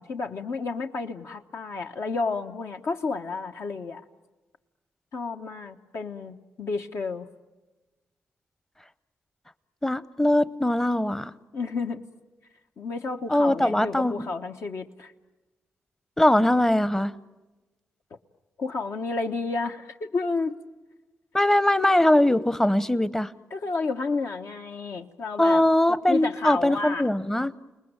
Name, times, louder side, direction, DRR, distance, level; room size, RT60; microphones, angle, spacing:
voice 1, 0.0-4.0 5.1-7.3 11.5-12.0 12.8-15.1 18.6-20.6 22.3-22.5 23.5-25.6 26.1-27.1, left 4 dB, 65° left, 5 dB, 1.2 m, -31 dB
voice 2, 9.8-11.3 13.3-14.1 16.2-17.1 21.3-23.3 25.4-27.6, left 1 dB, 10° left, 17 dB, 0.8 m, -21 dB
29.5 x 20.0 x 9.0 m, 1.2 s
cardioid pair, 90°, 5 cm